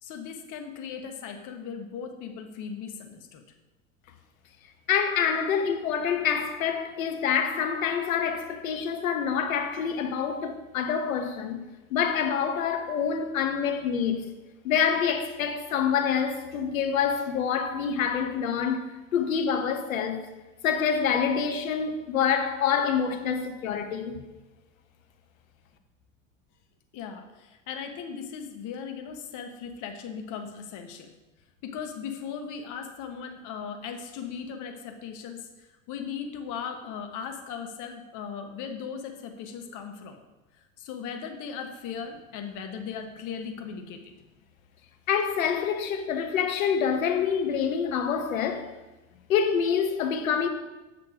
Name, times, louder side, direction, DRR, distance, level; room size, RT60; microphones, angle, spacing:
voice 1, 0.0-3.4 26.9-31.1 31.6-40.2 40.5-44.1, left 6 dB, 50° left, 1.3 m, -38 dB
voice 2, 4.9-11.6 11.9-14.2 14.6-20.3 20.6-24.2 45.1-48.7 49.3-50.5, left 7 dB, 80° left, 1.1 m, -26 dB
7.7 x 5.9 x 5.0 m
hypercardioid pair, 85°, 40 cm